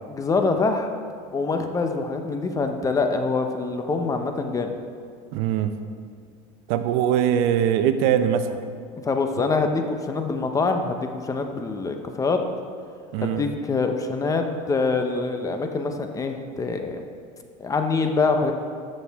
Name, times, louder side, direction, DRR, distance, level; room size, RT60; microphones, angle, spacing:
voice 1, 0.1-0.9 1.3-4.7 9.0-12.4 13.2-17.0 17.6-18.5, left 4 dB, 20° left, 5 dB, 0.7 m, -25 dB
voice 2, 5.3-5.7 6.7-8.6 13.1-13.4, right 9 dB, 70° right, 10 dB, 0.6 m, -22 dB
13.0 x 6.5 x 3.5 m, 2.2 s
supercardioid pair, 130°, 16 cm